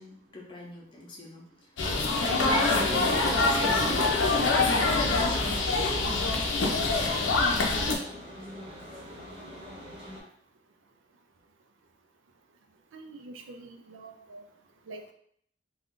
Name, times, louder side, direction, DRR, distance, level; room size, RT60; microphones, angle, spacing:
voice 1, 0.0-1.5 1.9-4.5, left 1 dB, 25° left, -3 dB, 0.6 m, -42 dB
sound 1, 1.8-8.0, left 3 dB, 85° left, 0.5 m, -25 dB
sound 2, 1.8-4.0, right 2 dB, 15° right, 0.5 m, -37 dB
sound 3, 3.4-10.2, equal, 35° right, 0.8 m, -43 dB
voice 2, 12.9-14.5 14.9-15.1, right 2 dB, 90° right, 5 dB, 0.4 m, -45 dB
2.5 x 2.3 x 3.6 m, 0.65 s
head